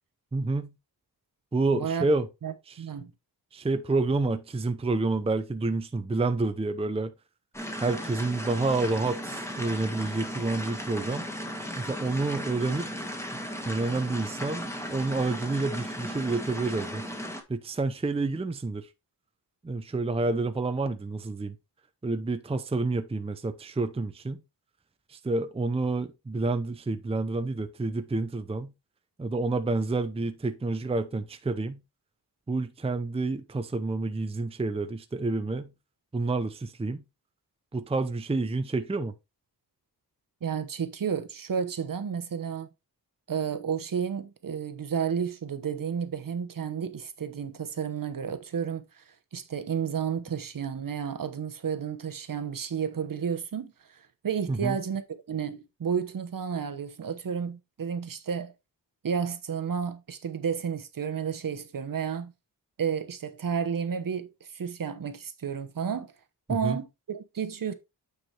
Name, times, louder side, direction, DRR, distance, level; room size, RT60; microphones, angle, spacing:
voice 1, 0.3-0.7 1.5-2.3 2.7-2.8 3.5-7.1 7.8-11.3 11.7-12.9 13.7-17.0 17.5-18.9 19.6-21.6 22.0-24.4 25.1-28.7 29.2-31.8 32.5-35.7 36.1-37.0 37.7-39.1 54.5-54.8 66.5-66.8, right 3 dB, 15° right, 0.6 m, -29 dB
voice 2, 1.7-2.0 2.4-3.1 40.4-42.7 43.3-49.0 49.3-55.0 55.3-58.5 59.0-62.3 62.8-66.1 66.5-67.7, right 7 dB, 50° right, 1.0 m, -32 dB
sound 1, 7.5-17.4, equal, 5° left, 1.6 m, -36 dB
9.1 x 4.8 x 3.3 m
wide cardioid pair, 105°, 43 cm